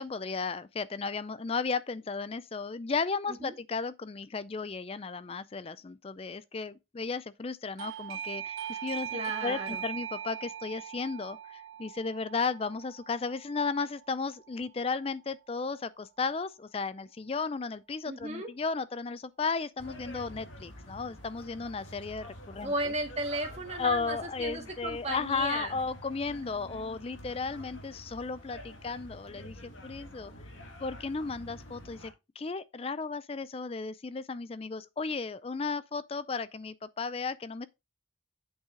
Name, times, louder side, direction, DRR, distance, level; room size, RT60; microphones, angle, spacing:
voice 1, 0.0-22.7 23.8-30.3 30.8-37.7, left 4 dB, 30° left, 0.4 m, -34 dB
Doorbell, 7.8-14.3, right 10 dB, 75° right, 0.3 m, -41 dB
voice 2, 9.1-9.8 18.1-18.5 22.6-25.8, right 2 dB, 30° right, 1.8 m, -35 dB
sound 1, 19.8-32.1, equal, 75° left, 2.2 m, -48 dB
8.2 x 5.9 x 3.7 m
head